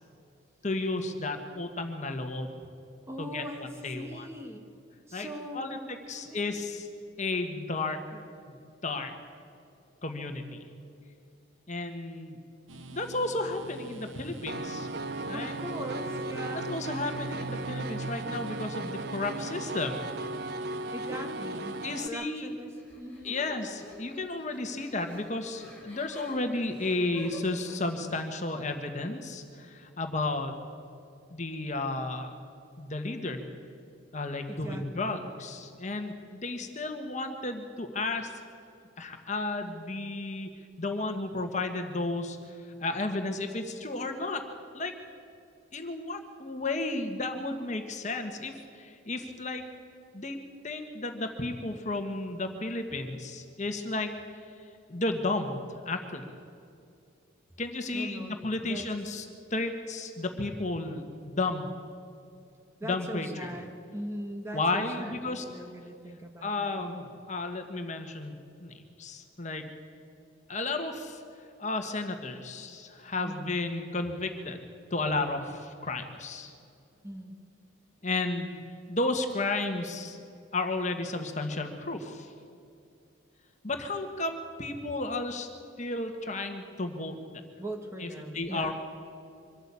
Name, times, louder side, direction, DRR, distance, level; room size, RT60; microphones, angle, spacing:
voice 1, 0.6-2.7 3.2-4.3 5.1-5.3 5.5-5.8 6.1-6.9 7.2-8.0 8.5-8.6 8.8-9.1 10.0-10.6 11.7-12.4 12.9-14.9 15.2-15.5 16.5-20.0 21.8-22.5 23.2-30.5 31.3-32.3 32.8-33.4 34.1-38.3 39.0-40.5 40.8-44.4 44.7-44.9 45.7-49.6 50.1-50.4 50.6-54.1 54.9-56.2 57.6-59.2 59.5-61.7 62.8-63.5 64.5-65.4 66.4-68.3 68.6-69.7 70.5-71.2 71.6-74.6 74.9-76.5 78.0-78.6 78.9-80.2 80.5-82.3 83.6-85.5 85.8-87.4 88.0-88.7, left 2 dB, 35° left, 5 dB, 1.5 m, -33 dB
voice 2, 3.1-3.7 3.9-4.7 5.1-5.8 6.1-6.5 8.1-8.2 15.3-16.7 20.9-22.7 23.0-23.4 34.5-35.2 57.9-58.9 62.8-66.8 73.2-73.4 77.0-77.4 87.6-88.7, equal, 15° right, 3 dB, 1.5 m, -40 dB
sound 1, 12.7-22.0, right 2 dB, 75° right, 1.1 m, -43 dB
Piano, 14.5-22.1, right 2 dB, 50° right, 0.6 m, -37 dB
sound 2, 22.8-27.8, left 2 dB, 10° left, 7.2 m, -48 dB
24.5 x 13.5 x 8.5 m, 2.4 s
head